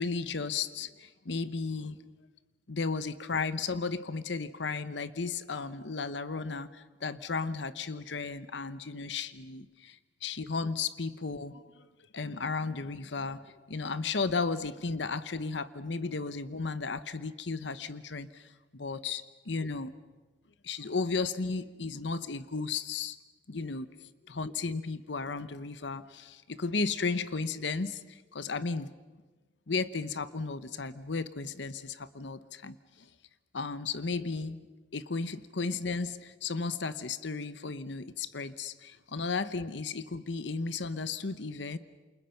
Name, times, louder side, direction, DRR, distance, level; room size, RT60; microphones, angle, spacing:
voice 1, 0.0-2.0 2.7-11.9 12.1-19.9 20.6-23.2 23.5-23.9 24.3-28.9 29.7-33.1 33.5-34.7 34.9-41.8, left 4 dB, 75° left, 14 dB, 0.9 m, -34 dB
28.5 x 28.5 x 5.8 m, 1.3 s
head